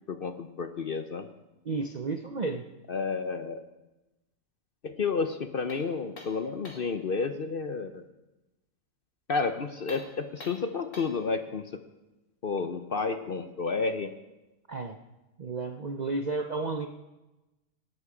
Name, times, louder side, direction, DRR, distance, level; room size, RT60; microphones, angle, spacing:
voice 1, 0.1-1.3 2.9-3.6 4.8-8.0 9.3-11.6 12.4-14.1, left 4 dB, 50° left, 9 dB, 0.7 m, -31 dB
voice 2, 1.6-2.6 14.7-15.0 15.4-16.9, right 3 dB, 50° right, 6 dB, 0.5 m, -32 dB
sound 1, 5.7-7.0 9.8-11.3, left 2 dB, 80° left, 3.0 m, -47 dB
18.5 x 11.0 x 4.9 m, 1.1 s
omnidirectional pair, 1.5 m